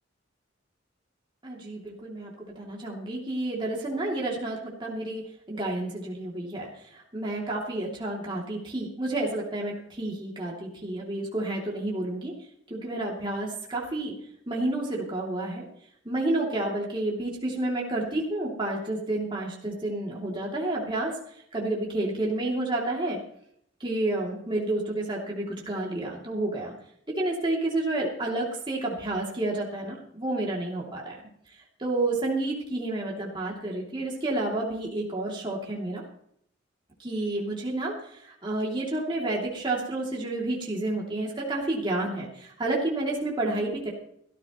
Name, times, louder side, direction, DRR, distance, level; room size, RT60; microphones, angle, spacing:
voice 1, 1.4-12.3 12.7-14.1 14.5-15.6 16.0-21.2 21.5-23.2 23.8-26.7 27.1-31.2 31.5-36.0 37.0-43.9, right 2 dB, 25° right, -3 dB, 2.8 m, -30 dB
17.0 x 14.0 x 3.1 m, 0.70 s
head